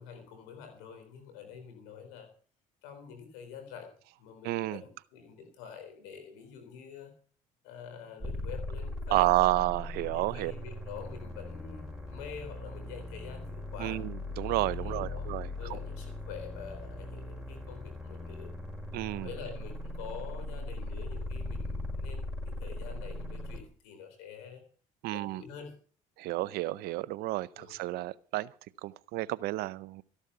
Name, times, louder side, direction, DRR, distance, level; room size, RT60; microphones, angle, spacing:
voice 1, 0.0-2.3 2.8-3.9 4.2-7.1 7.6-9.7 10.0-14.0 14.8-18.5 19.2-24.6 25.1-25.8 27.5-27.7, left 7 dB, 90° left, 3.9 m, -46 dB
voice 2, 4.4-4.8 9.1-10.5 13.8-15.8 18.9-19.3 25.0-25.4 26.2-28.5 28.8-30.0, right 18 dB, 75° right, 0.7 m, -31 dB
sound 1, 8.2-23.6, left 1 dB, ahead, 6.1 m, -39 dB
14.0 x 11.5 x 5.6 m
supercardioid pair, 80°, 16 cm